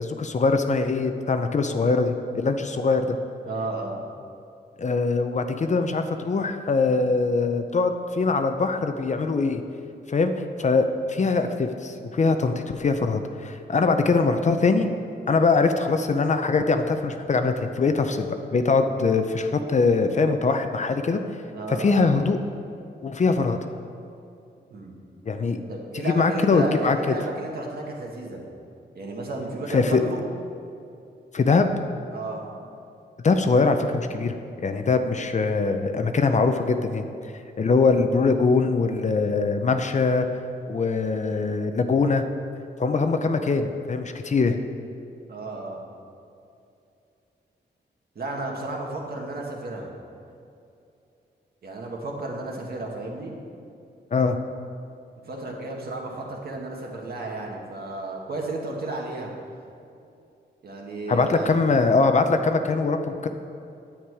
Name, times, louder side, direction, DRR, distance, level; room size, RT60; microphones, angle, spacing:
voice 1, 0.0-3.1 4.8-9.6 10.1-10.3 10.6-14.9 15.3-18.3 18.5-21.2 21.7-22.4 23.0-23.6 25.2-25.6 25.9-27.0 29.7-30.0 31.3-31.7 33.2-37.0 37.6-40.3 40.7-42.2 42.8-44.6 54.1-54.4 61.1-63.3, left 4 dB, 40° left, 7 dB, 0.6 m, -22 dB
voice 2, 3.5-4.0 21.5-22.0 24.7-24.9 25.7-28.4 29.0-30.2 32.1-32.5 45.3-45.8 48.2-49.9 51.6-53.3 55.3-59.3 60.6-61.6, right 2 dB, 55° right, -1 dB, 1.8 m, -33 dB
10.5 x 8.9 x 4.8 m, 2.6 s
wide cardioid pair, 140°, 19 cm